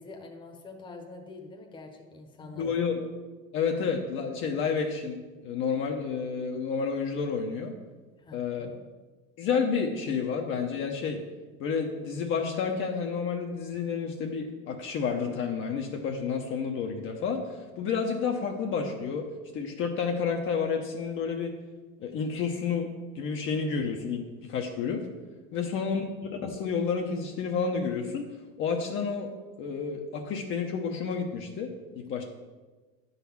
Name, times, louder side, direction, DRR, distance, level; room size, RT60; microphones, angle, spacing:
voice 1, 0.0-2.8 8.2-8.8 25.5-25.7, left 3 dB, 15° left, 2 dB, 1.1 m, -46 dB
voice 2, 2.5-3.0 3.5-7.7 8.3-8.8 9.4-11.2 11.6-21.6 22.0-25.1 25.5-28.3 28.6-29.3 29.6-32.2, left 5 dB, 40° left, 2 dB, 0.9 m, -30 dB
9.6 x 4.1 x 7.1 m, 1.3 s
cardioid pair, 155°, 30 cm